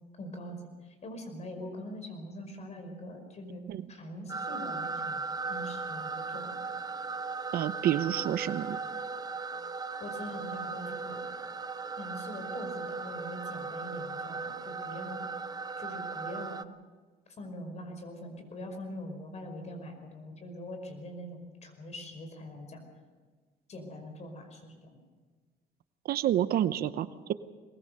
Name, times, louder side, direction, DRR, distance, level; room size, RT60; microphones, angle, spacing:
voice 1, 0.2-3.6 3.9-5.2 5.5-6.6 10.0-11.2 12.0-15.3 15.8-16.6 17.4-22.8 23.7-25.0, left 1 dB, 40° left, 5 dB, 5.3 m, -43 dB
sound 1, 4.3-16.6, right 4 dB, 20° right, 0.8 m, -37 dB
voice 2, 7.5-8.8 26.0-27.3, right 11 dB, 65° right, 14 dB, 0.8 m, -29 dB
22.5 x 20.5 x 6.7 m, 1.4 s
cardioid pair, 110°, 17 cm